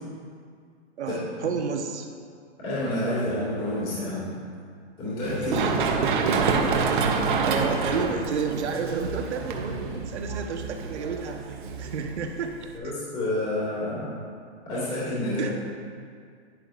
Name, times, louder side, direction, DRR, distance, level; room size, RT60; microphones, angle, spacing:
voice 1, 1.0-2.1 5.4-5.7 7.2-11.4 11.8-12.5 15.4-15.5, right 5 dB, 70° right, 3 dB, 1.2 m, -31 dB
voice 2, 2.6-4.3 5.0-5.6 12.7-14.1 14.6-15.5, left 1 dB, 15° left, -9 dB, 2.4 m, -29 dB
Run, 5.2-12.8, right 4 dB, 45° right, 0.8 m, -27 dB
10.5 x 9.8 x 2.5 m, 2.2 s
hypercardioid pair, 175°, 35 cm